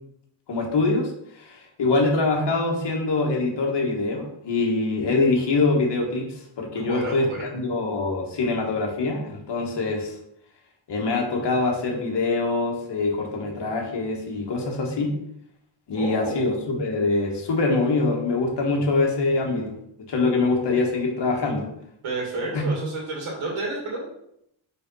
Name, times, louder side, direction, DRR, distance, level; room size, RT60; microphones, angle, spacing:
voice 1, 0.5-6.3 6.6-10.2 10.9-15.1 15.9-19.7 20.1-21.7 22.5-22.6, left 3 dB, 60° left, 1 dB, 1.7 m, -24 dB
voice 2, 6.7-7.5 16.0-16.4 18.7-18.8 22.0-24.1, right 2 dB, 90° right, -2 dB, 2.1 m, -31 dB
5.0 x 4.5 x 5.5 m, 0.75 s
wide cardioid pair, 135°, 47 cm